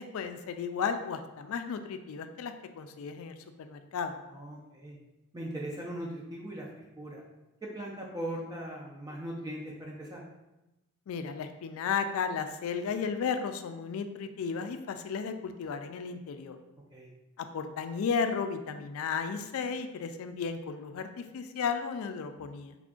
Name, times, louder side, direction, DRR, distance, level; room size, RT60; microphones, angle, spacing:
voice 1, 0.0-4.1 11.1-16.6 17.4-22.8, left 6 dB, 70° left, 8 dB, 0.3 m, -34 dB
voice 2, 4.3-5.0 5.3-6.7 7.0-7.2 7.7-10.2 16.9-17.1, right 1 dB, 15° right, -2 dB, 0.4 m, -39 dB
3.4 x 2.4 x 3.6 m, 0.99 s
head